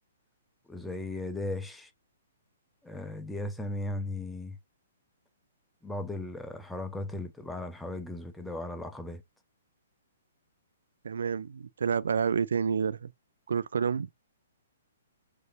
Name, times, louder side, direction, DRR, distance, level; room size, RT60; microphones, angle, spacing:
voice 1, 0.7-1.9 2.8-4.6 5.8-9.2, left 2 dB, 5° left, 0.9 m, -36 dB
voice 2, 11.0-13.1 13.5-14.1, right 6 dB, 70° right, 0.4 m, -29 dB
6.6 x 3.1 x 2.6 m
figure-of-eight pair, 125°, 0 cm